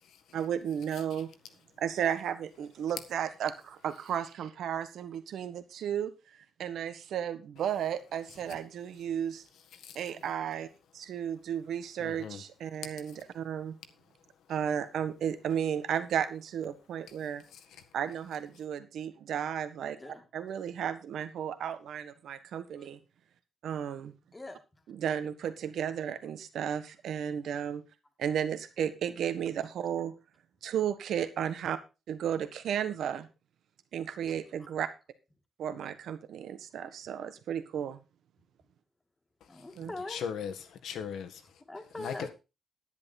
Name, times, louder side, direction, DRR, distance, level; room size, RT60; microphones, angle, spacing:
voice 1, 0.3-1.3 1.8-6.1 6.6-9.4 9.9-10.7 10.9-13.8 14.5-17.4 17.9-20.0 20.3-23.0 23.6-24.1 24.9-27.8 28.2-30.1 30.6-31.8 32.1-33.3 33.9-34.9 35.6-38.0 39.8-39.9, right 9 dB, 70° right, 1.4 m, -33 dB
voice 2, 0.9-1.2 8.3-8.4 9.5-10.1 12.0-12.4 12.8-13.3 14.5-14.6 17.1-17.9 39.4-39.6 40.1-41.6 42.0-42.3, left 7 dB, 80° left, 1.7 m, -41 dB
voice 3, 19.8-20.3 22.8-22.9 24.3-24.6 34.6-34.7 39.5-40.2 41.7-42.3, left 2 dB, 15° left, 1.8 m, -42 dB
10.5 x 10.5 x 4.2 m
cardioid pair, 160°, 0 cm